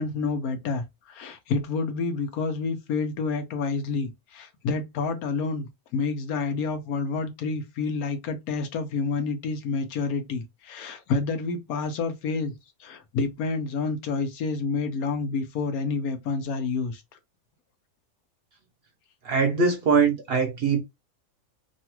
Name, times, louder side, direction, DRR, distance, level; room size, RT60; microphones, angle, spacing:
voice 1, 0.0-12.5 12.8-17.0, left 4 dB, 80° left, 1.2 m, -29 dB
voice 2, 19.2-20.8, right 5 dB, 50° right, 0.8 m, -22 dB
3.0 x 2.3 x 2.9 m
omnidirectional pair, 1.5 m